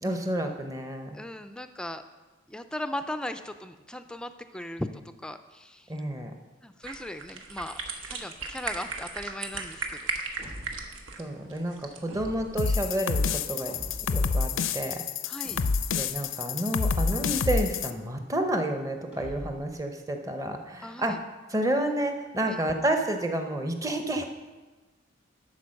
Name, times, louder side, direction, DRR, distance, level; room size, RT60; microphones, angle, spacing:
voice 1, 0.0-1.2 5.9-6.3 11.2-13.7 14.1-15.0 15.9-21.2 21.5-24.3, right 1 dB, 15° right, 5 dB, 0.7 m, -30 dB
voice 2, 1.1-2.0 2.5-5.9 6.6-10.0 15.3-15.6 20.8-21.2 22.5-22.6, left 1 dB, 5° left, 9 dB, 0.3 m, -38 dB
sound 1, 6.8-12.8, right 4 dB, 75° right, 1.1 m, -37 dB
sound 2, 10.4-11.0 12.1-12.8 13.7-14.3 15.4-16.1 17.1-17.8 19.1-19.8, equal, 30° right, 1.7 m, -43 dB
sound 3, 12.6-17.9, left 5 dB, 80° left, 0.5 m, -28 dB
11.5 x 4.5 x 6.4 m, 1.2 s
head